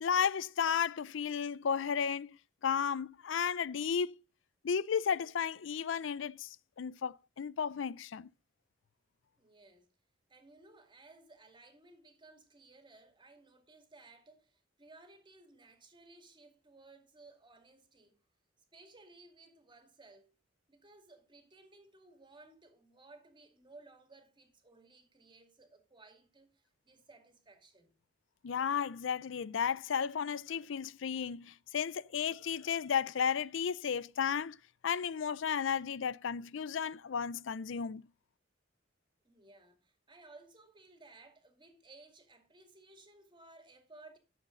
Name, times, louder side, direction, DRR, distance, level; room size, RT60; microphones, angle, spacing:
voice 1, 0.0-2.4 2.6-4.1 4.6-8.3 28.4-34.6 34.8-38.0, left 7 dB, 80° left, 0.5 m, -33 dB
voice 2, 9.4-9.9 10.3-18.2 18.7-20.3 20.7-28.0 39.2-44.2, right 2 dB, 25° right, 2.2 m, -59 dB
11.5 x 7.3 x 3.8 m
head